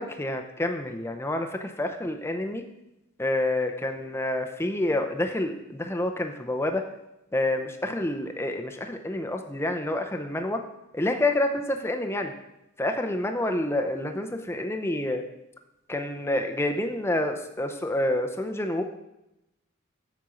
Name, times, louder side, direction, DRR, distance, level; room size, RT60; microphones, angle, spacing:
voice 1, 0.0-2.6 3.2-6.8 7.3-10.6 10.9-12.3 12.8-15.2 15.9-18.8, left 1 dB, 10° left, 4 dB, 0.6 m, -28 dB
7.8 x 5.2 x 7.0 m, 0.90 s
head